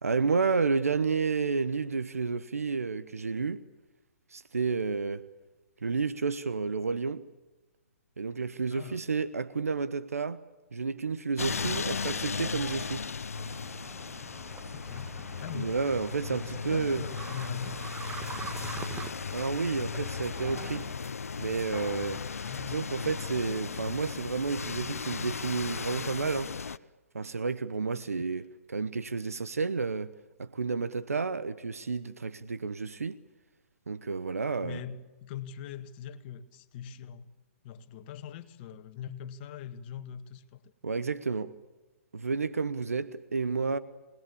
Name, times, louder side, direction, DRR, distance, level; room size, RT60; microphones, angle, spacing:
voice 1, 0.0-3.6 4.3-5.2 5.8-7.3 8.2-10.4 10.7-13.0 15.5-17.1 19.3-20.9 21.4-22.2 22.7-26.5 27.1-30.1 30.4-33.2 33.9-34.8 40.8-41.5 42.1-43.8, right 4 dB, 90° right, 1.1 m, -31 dB
voice 2, 8.7-9.0 11.6-11.9 14.7-15.8 16.3-17.8 20.5-20.7 22.4-22.9 34.6-37.3 37.6-40.6, left 8 dB, 40° left, 1.8 m, -42 dB
sound 1, 11.4-26.8, left 5 dB, 85° left, 0.8 m, -36 dB
sound 2, 13.3-20.9, right 6 dB, 15° right, 1.1 m, -45 dB
28.0 x 19.5 x 8.6 m
hypercardioid pair, 130°, 8 cm